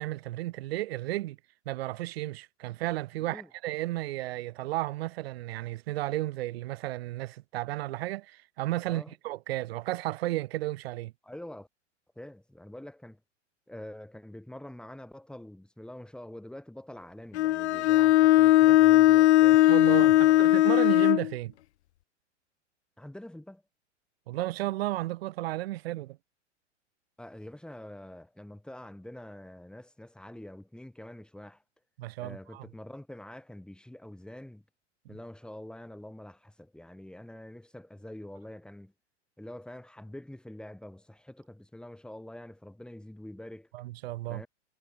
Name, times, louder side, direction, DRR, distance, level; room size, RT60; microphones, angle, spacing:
voice 1, 0.0-1.4 1.7-11.1 18.6-18.8 19.7-21.5 24.3-26.2 32.0-32.7 43.7-44.4, right 17 dB, 55° right, 0.8 m, -33 dB
voice 2, 11.2-11.7 12.2-13.2 13.7-20.5 23.0-23.6 27.2-31.6 32.2-34.6 35.1-38.9 39.4-43.7 44.3-44.5, left 1 dB, ahead, 6.2 m, -46 dB
Bowed string instrument, 17.3-21.3, left 15 dB, 65° left, 0.5 m, -19 dB
figure-of-eight pair, 100°, 36 cm